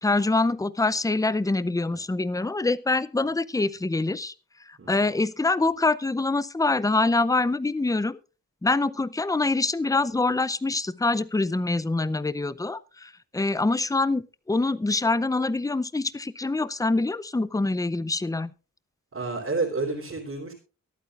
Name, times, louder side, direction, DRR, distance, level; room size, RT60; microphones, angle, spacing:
voice 1, 0.0-4.3 4.7-8.2 8.6-18.5, left 3 dB, 10° left, 17 dB, 0.5 m, -25 dB
voice 2, 19.1-20.5, right 3 dB, 40° right, -3 dB, 3.5 m, -30 dB
23.5 x 8.8 x 2.5 m, 0.33 s
wide cardioid pair, 115°, 34 cm